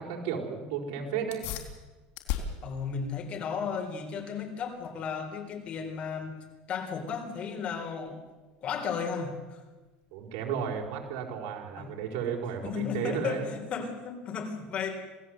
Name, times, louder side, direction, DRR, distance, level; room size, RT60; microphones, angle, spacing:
voice 1, 0.0-1.5 10.1-13.4, right 7 dB, 70° right, 1 dB, 4.8 m, -33 dB
sound 1, 1.2-11.2, left 9 dB, 65° left, 3.7 m, -43 dB
voice 2, 2.6-6.3 6.7-8.2 8.6-9.6 11.8-11.9 12.6-15.1, left 6 dB, 35° left, 4 dB, 4.0 m, -34 dB
27.0 x 17.5 x 7.9 m, 1.2 s
cardioid pair, 160°, 4 cm